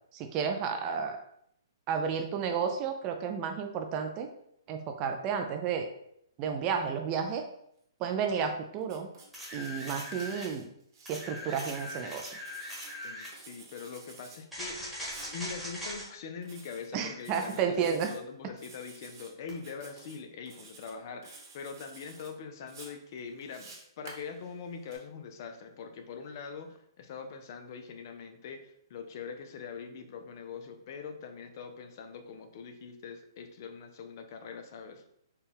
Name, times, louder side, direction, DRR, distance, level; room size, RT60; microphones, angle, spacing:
voice 1, 0.1-1.2 1.9-4.3 4.7-5.9 6.4-7.4 8.0-9.1 9.5-10.7 11.1-12.4 16.9-18.1, right 6 dB, 30° right, 5 dB, 0.4 m, -32 dB
Writing, 8.8-11.1 11.5-13.0 13.3-14.4 15.0-15.3 16.4-16.9 17.2-18.2 18.6-19.3 19.6-20.2 20.5-20.9 21.2-22.3 22.7-25.0, right 3 dB, 55° right, 1.1 m, -52 dB
sound 1, 9.3-10.5 11.1-13.4 14.5-16.1 19.5-19.6, left 1 dB, ahead, 1.2 m, -40 dB
voice 2, 13.0-15.1 15.3-35.0, left 5 dB, 45° left, 6 dB, 0.5 m, -43 dB
4.4 x 2.3 x 3.4 m, 0.72 s
hypercardioid pair, 145°, 2 cm